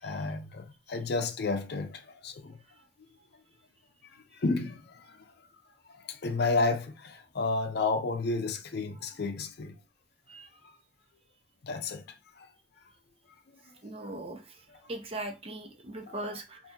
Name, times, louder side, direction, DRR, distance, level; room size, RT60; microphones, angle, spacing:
voice 1, 0.0-2.6 4.3-5.3 6.0-9.7 11.6-12.0 12.4-12.5 16.1-16.2, left 3 dB, 60° left, 0.5 m, -31 dB
voice 2, 13.8-14.4 14.9-16.6, right 1 dB, 30° right, 0.6 m, -39 dB
2.7 x 2.6 x 3.6 m
head